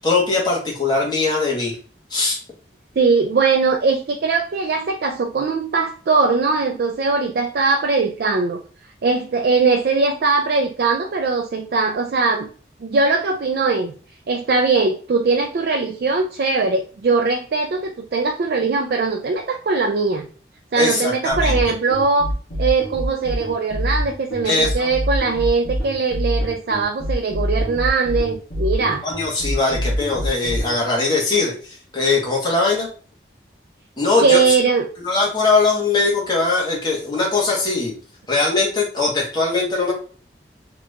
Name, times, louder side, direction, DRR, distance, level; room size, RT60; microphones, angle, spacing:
voice 1, 0.0-1.8 2.1-2.4 20.7-21.6 24.4-24.9 29.0-32.9 34.0-34.4 35.0-37.9 38.3-39.9, left 3 dB, 25° left, -3 dB, 1.1 m, -20 dB
voice 2, 3.0-8.6 9.0-12.5 12.8-13.9 14.3-20.3 20.7-22.3 22.6-29.0 34.2-34.9, right 4 dB, 60° right, 3 dB, 0.3 m, -20 dB
sound 1, 21.3-30.7, equal, 70° left, 1.1 m, -25 dB
2.9 x 2.5 x 3.2 m, 0.41 s
head